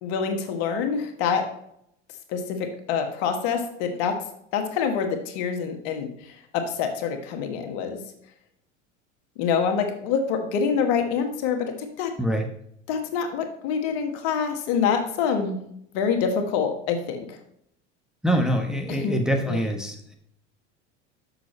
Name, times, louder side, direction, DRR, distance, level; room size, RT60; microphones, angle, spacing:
voice 1, 0.0-1.5 2.3-4.2 4.5-8.0 9.4-12.1 12.9-15.6 15.9-17.4 18.9-19.2 19.5-19.6, left 6 dB, 65° left, 5 dB, 1.5 m, -26 dB
voice 2, 18.2-20.1, right 1 dB, ahead, 2 dB, 1.1 m, -24 dB
6.8 x 6.2 x 4.3 m, 0.73 s
supercardioid pair, 105°, 35 cm